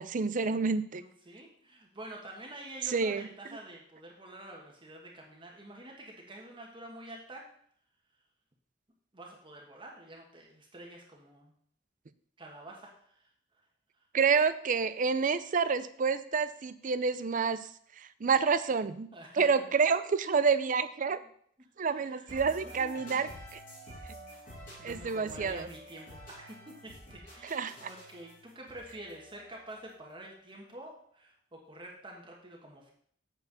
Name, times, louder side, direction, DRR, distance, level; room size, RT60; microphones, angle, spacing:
voice 1, 0.0-1.0 2.9-3.3 14.1-17.7 18.0-19.1 19.3-21.2 21.8-23.6 24.8-25.7 27.4-27.9, right 5 dB, 45° right, 13 dB, 0.5 m, -28 dB
voice 2, 0.9-7.4 9.1-11.5 12.4-13.3 19.1-19.7 21.8-23.2 24.8-32.9, right 1 dB, 25° right, -1 dB, 1.4 m, -48 dB
sound 1, 22.3-30.1, equal, 45° left, 4.1 m, -49 dB
8.2 x 4.5 x 6.7 m, 0.63 s
head